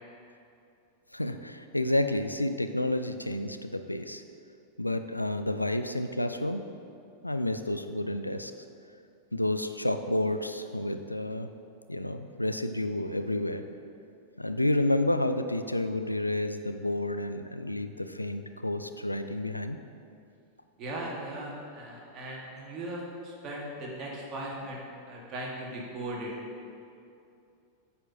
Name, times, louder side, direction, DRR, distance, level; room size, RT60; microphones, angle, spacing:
voice 1, 1.1-4.2 4.8-6.7 7.2-8.5 9.3-11.5 11.9-13.6 14.4-19.8, left 1 dB, 85° left, 8 dB, 0.3 m, -30 dB
voice 2, 20.8-26.3, right 1 dB, 35° right, -3 dB, 1.8 m, -38 dB
8.7 x 4.5 x 5.4 m, 2.6 s
figure-of-eight pair, 90°, 0 cm